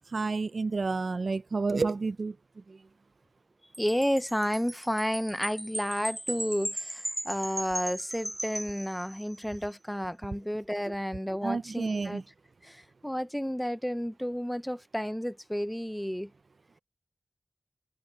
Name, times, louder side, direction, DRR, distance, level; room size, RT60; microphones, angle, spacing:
voice 1, 0.1-2.3 11.4-12.2, right 4 dB, 70° right, 0.4 m, -30 dB
Wind chime, 3.7-9.4, right 1 dB, 15° right, 6.0 m, -38 dB
voice 2, 3.8-12.2 12.6-16.3, equal, 5° left, 0.5 m, -31 dB
wide cardioid pair, 65°, 0 cm